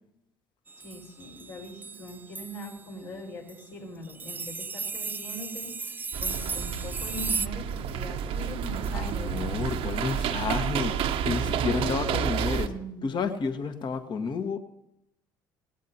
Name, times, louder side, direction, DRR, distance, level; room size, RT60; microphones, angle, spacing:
sound 1, 0.7-2.8 3.5-3.7 4.1-7.5, right 4 dB, 15° right, 0.4 m, -35 dB
voice 1, 0.8-9.6 12.6-13.1, equal, 65° left, 5.0 m, -41 dB
sound 2, 6.1-12.7, right 7 dB, 60° right, 1.0 m, -30 dB
voice 2, 8.9-12.7 13.0-14.6, left 5 dB, 45° left, 1.5 m, -31 dB
17.0 x 16.5 x 2.9 m
hypercardioid pair, 65°, 11 cm